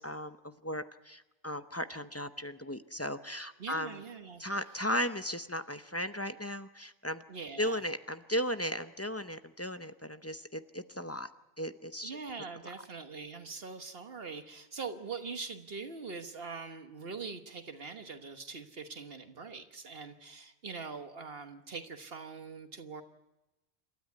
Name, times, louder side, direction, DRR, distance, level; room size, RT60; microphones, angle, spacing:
voice 1, 0.0-4.0 4.4-7.2 7.6-11.3 11.6-12.2, equal, 15° left, 10 dB, 0.6 m, -36 dB
voice 2, 3.6-4.4 7.3-7.8 12.0-23.0, right 4 dB, 65° right, 7 dB, 1.4 m, -43 dB
28.0 x 13.0 x 9.5 m, 1.0 s
omnidirectional pair, 1.1 m